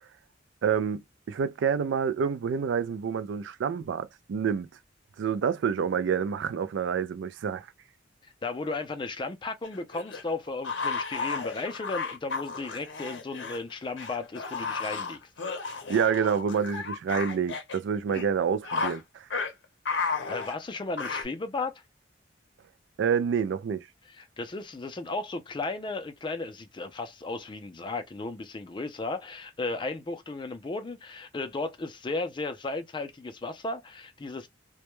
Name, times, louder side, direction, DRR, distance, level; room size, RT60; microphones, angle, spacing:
voice 1, 0.6-4.7 5.2-7.7 15.9-19.3 23.0-23.9, right 7 dB, 70° right, 0.3 m, -28 dB
voice 2, 8.4-15.2 20.0-21.8 24.1-34.5, left 3 dB, 25° left, 0.4 m, -35 dB
sound 1, 9.6-13.6 14.0-17.8 18.1-18.3 18.6-19.0 19.3-19.5 19.9-21.2, left 4 dB, 65° left, 0.7 m, -33 dB
2.2 x 2.1 x 2.9 m
head